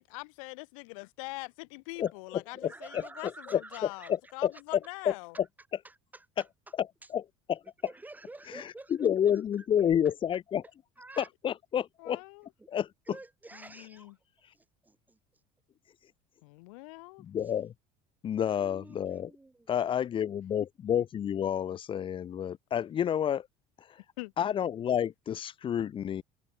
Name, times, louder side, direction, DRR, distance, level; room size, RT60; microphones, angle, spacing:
voice 1, 0.0-5.3 12.0-12.5 13.6-14.1 16.4-17.2 24.2-24.3, left 27 dB, 90° left, 2.3 m, -43 dB
voice 2, 2.0-2.7 3.5-3.6 4.4-4.5 5.0-5.1 7.1-7.2 7.5-7.6 8.5-8.7 9.0-10.6 11.2-12.2 12.7-12.9 14.4-14.5 16.0-16.1 17.2-17.7 18.2-19.3 19.7-23.5 23.8-24.0 24.4-26.2, left 9 dB, 30° left, 0.6 m, -29 dB
voice 3, 2.6-4.6 5.8-6.5 7.0-7.1 7.8-9.7 10.0-10.1 11.0-11.3 12.6-12.7 13.1-14.2 14.5-15.4 17.4-17.5 18.6-19.7, right 2 dB, 10° right, 3.2 m, -50 dB
cardioid pair, 120°, 17 cm